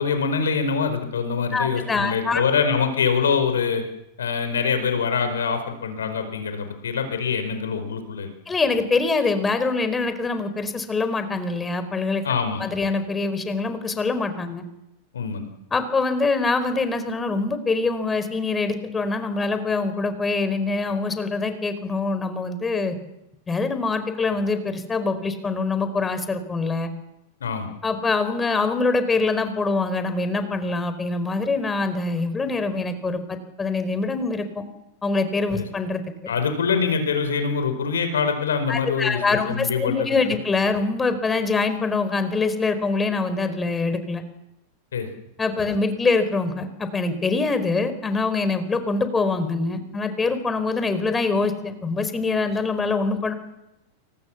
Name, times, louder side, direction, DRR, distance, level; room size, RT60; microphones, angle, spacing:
voice 1, 0.0-3.8 4.2-8.3 12.2-12.6 15.1-15.4 27.4-27.7 35.5-35.6 36.3-40.4 44.9-45.1 45.6-45.7, left 6 dB, 65° left, 8 dB, 4.9 m, -24 dB
voice 2, 1.5-2.4 8.5-12.2 12.6-14.6 15.7-23.0 23.5-26.9 27.8-34.6 35.0-36.0 38.7-44.2 45.4-53.3, left 3 dB, 15° left, 11 dB, 4.6 m, -24 dB
29.0 x 24.5 x 7.3 m, 0.90 s
figure-of-eight pair, 90°, 0 cm